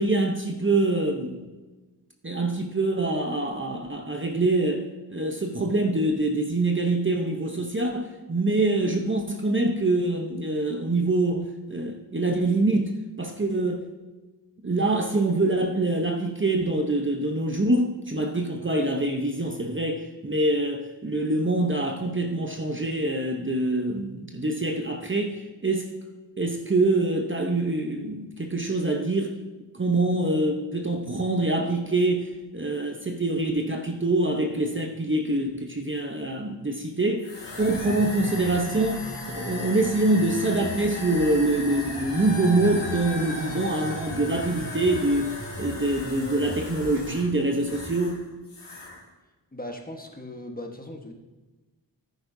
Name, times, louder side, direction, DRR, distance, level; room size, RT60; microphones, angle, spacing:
voice 1, 0.0-1.4 2.2-4.8 5.1-12.9 13.2-13.8 14.6-25.9 26.4-29.4 29.7-37.3 37.6-39.0 39.3-48.3, right 2 dB, 30° right, 3 dB, 0.9 m, -25 dB
sound 1, 37.2-48.2 48.5-49.0, left 1 dB, 80° left, 2.0 m, -36 dB
voice 2, 49.5-51.1, left 1 dB, 20° left, 2 dB, 1.3 m, -38 dB
10.5 x 9.2 x 2.7 m, 1.2 s
wide cardioid pair, 60°, 42 cm